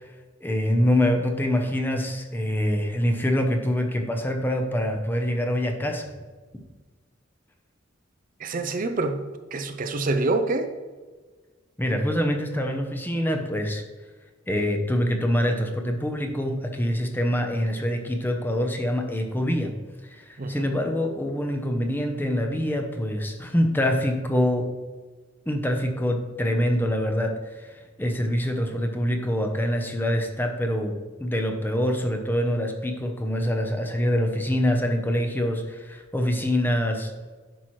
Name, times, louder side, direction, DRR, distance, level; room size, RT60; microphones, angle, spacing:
voice 1, 0.4-6.1 11.8-13.8 14.5-19.7 20.1-24.7 25.5-37.1, equal, 10° left, 4 dB, 0.8 m, -25 dB
voice 2, 8.4-9.2 9.5-10.7 20.4-20.7, right 2 dB, 45° right, 7 dB, 0.6 m, -26 dB
10.0 x 5.9 x 3.2 m, 1.4 s
head